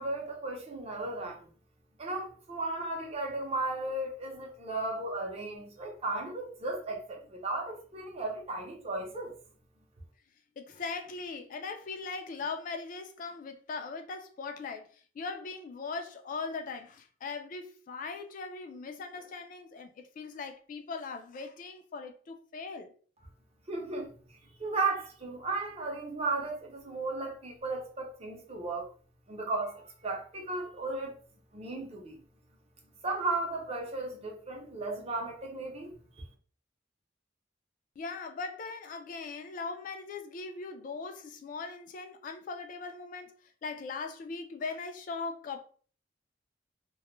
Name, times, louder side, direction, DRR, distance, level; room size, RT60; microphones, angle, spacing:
voice 1, 0.0-1.5 2.0-9.3 23.7-24.1 24.6-28.9 29.3-31.1 31.5-32.2 33.0-36.0, right 2 dB, 35° right, 0.6 m, -35 dB
voice 2, 10.6-14.9 15.2-22.9 38.0-43.3 43.6-45.6, left 4 dB, 45° left, 0.3 m, -40 dB
2.2 x 2.0 x 3.0 m
head